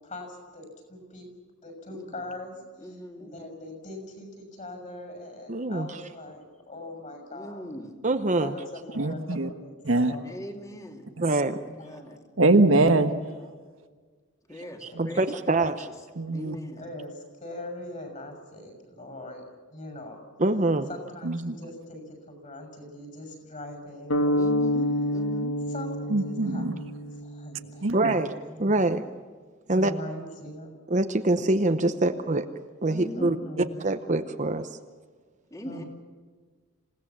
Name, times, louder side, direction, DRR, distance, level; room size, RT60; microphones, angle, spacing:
voice 1, 0.0-1.3 1.6-7.6 8.4-10.2 11.7-12.0 14.9-15.1 16.8-19.4 19.7-20.2 20.9-24.5 25.7-28.0 28.4-28.8 29.7-30.7 33.1-33.7 35.6-35.9, left 1 dB, 35° left, 4 dB, 6.8 m, -41 dB
voice 2, 2.8-3.3 7.3-8.0 10.2-11.2 11.8-12.2 14.5-15.7 16.3-16.8 24.3-25.6 32.8-33.3 35.5-35.8, equal, 15° left, 3 dB, 2.7 m, -40 dB
voice 3, 5.5-6.0 8.0-8.5 11.2-11.6 14.8-15.9 20.4-20.9 27.9-28.3 28.6-29.1 29.7-29.9 30.9-32.4 32.8-33.4 33.8-34.8, right 2 dB, 35° right, 8 dB, 0.9 m, -25 dB
voice 4, 8.9-9.5 9.8-10.2 12.4-13.1 14.9-15.1 16.2-16.6 21.2-21.5 26.1-26.7 27.8-28.1, right 2 dB, 75° right, 7 dB, 1.5 m, -23 dB
sound 1, 24.1-28.0, equal, 85° left, 2.0 m, -28 dB
27.5 x 17.5 x 7.3 m, 1.5 s
head